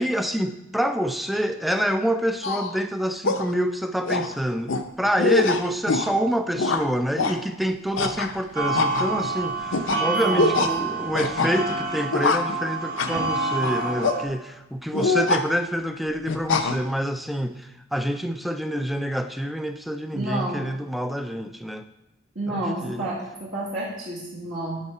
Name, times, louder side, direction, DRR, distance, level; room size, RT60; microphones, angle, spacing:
voice 1, 0.0-21.9 22.5-23.1, equal, ahead, 8 dB, 0.3 m, -27 dB
sound 1, 2.4-2.8 3.2-3.5 4.0-4.3 4.7-4.8 5.2-6.1 6.6-6.9 7.2-7.4 8.0-8.4 8.7-9.3 9.7-10.0 10.4-10.7 11.1-11.8 12.1-12.6 13.0-13.2 13.6-14.2 14.9-15.4 16.3-16.8, left 3 dB, 70° left, 0.6 m, -24 dB
sound 2, 8.6-14.2, right 3 dB, 50° right, 1.7 m, -28 dB
voice 2, 10.0-10.5 20.1-20.7 22.4-24.8, right 1 dB, 70° right, -7 dB, 2.0 m, -30 dB
10.0 x 3.7 x 5.5 m, 0.93 s
head